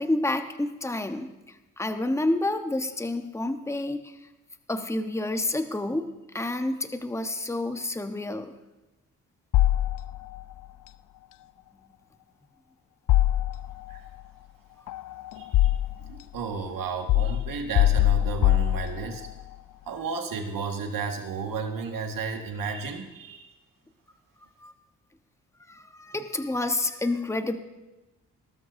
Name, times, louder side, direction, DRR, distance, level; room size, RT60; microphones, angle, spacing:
voice 1, 0.0-4.1 4.7-8.5 24.6-24.7 25.7-27.6, left 2 dB, 10° left, 7 dB, 1.1 m, -29 dB
sound 1, 9.5-10.4 13.1-14.0 14.9-16.2 17.1-19.3, left 14 dB, 65° left, 0.5 m, -23 dB
voice 2, 15.4-15.8 16.1-19.3 19.9-23.5, right 5 dB, 70° right, 4 dB, 1.8 m, -33 dB
19.0 x 12.5 x 2.7 m, 1.0 s
supercardioid pair, 60°, 35 cm